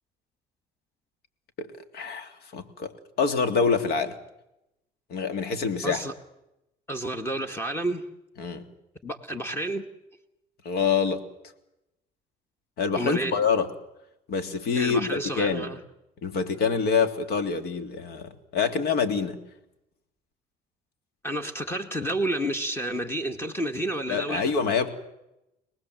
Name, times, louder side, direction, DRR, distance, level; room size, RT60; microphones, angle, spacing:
voice 1, 1.9-2.9 3.2-4.2 5.1-6.0 8.4-8.6 10.6-11.2 12.8-13.7 14.3-15.7 16.2-19.4 24.1-24.9, left 5 dB, 70° left, 8 dB, 3.0 m, -26 dB
voice 2, 5.8-6.1 6.9-8.0 9.0-9.9 12.9-13.4 14.7-15.8 21.2-24.5, right 1 dB, 15° left, 7 dB, 2.0 m, -30 dB
26.0 x 19.5 x 7.9 m, 0.88 s
cardioid pair, 110°, 17 cm